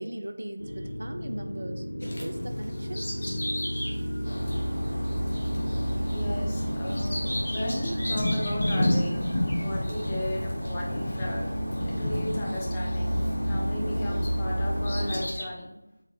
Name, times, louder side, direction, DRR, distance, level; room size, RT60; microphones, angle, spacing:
voice 1, 0.0-3.1, right 1 dB, 55° right, 6 dB, 0.3 m, -38 dB
sound 1, 0.6-15.2, equal, 75° left, 0.8 m, -32 dB
Bird vocalization bird call bird song, 2.0-14.1 14.6-15.4, left 1 dB, 40° left, 0.7 m, -33 dB
sound 2, 4.2-15.3, equal, 55° left, 1.1 m, -34 dB
voice 2, 5.7-11.5 11.8-15.7, left 1 dB, 15° left, -4 dB, 0.4 m, -36 dB
4.3 x 2.3 x 3.0 m, 0.92 s
figure-of-eight pair, 170°, 0 cm